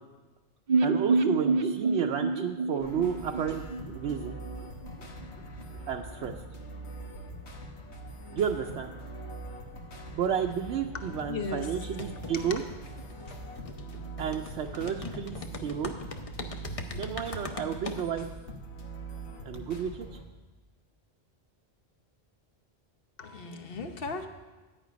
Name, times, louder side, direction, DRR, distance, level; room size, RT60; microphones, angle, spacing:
sound 1, 0.7-4.6 4.8-4.9 5.2-5.3, right 4 dB, 50° right, 0.7 m, -27 dB
voice 1, 0.8-3.7 3.9-4.4 5.9-6.3 8.3-9.0 10.1-12.6 14.2-15.9 16.9-18.3 19.5-20.1, right 8 dB, 80° right, 3 dB, 0.9 m, -31 dB
sound 2, 2.8-20.2, right 2 dB, 80° left, 1.5 m, -43 dB
voice 2, 10.9-11.7 12.3-12.6 23.2-24.3, left 4 dB, 60° left, 6 dB, 1.1 m, -37 dB
sound 3, 11.6-18.1, left 3 dB, 40° left, 0.7 m, -41 dB
11.0 x 8.8 x 5.1 m, 1.2 s
omnidirectional pair, 1.1 m